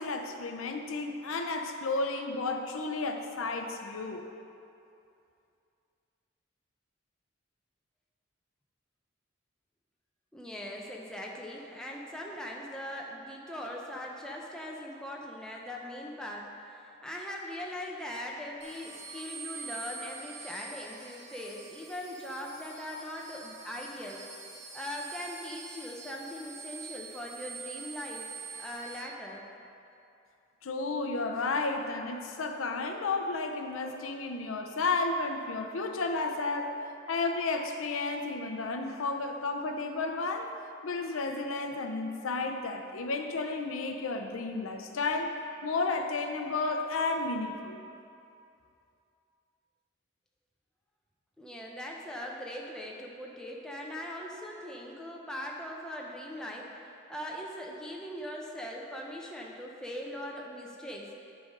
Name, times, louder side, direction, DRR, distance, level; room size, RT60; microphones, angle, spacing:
voice 1, 0.0-4.3 30.6-36.7 37.1-40.5 40.8-45.3 45.6-47.8, left 3 dB, 85° left, 5 dB, 0.6 m, -32 dB
voice 2, 10.3-24.2 24.7-28.3 28.6-29.4 51.4-61.1, left 1 dB, 5° left, -2 dB, 0.7 m, -40 dB
sound 1, 18.6-29.0, right 5 dB, 35° right, 0.9 m, -45 dB
10.0 x 3.8 x 5.3 m, 2.6 s
head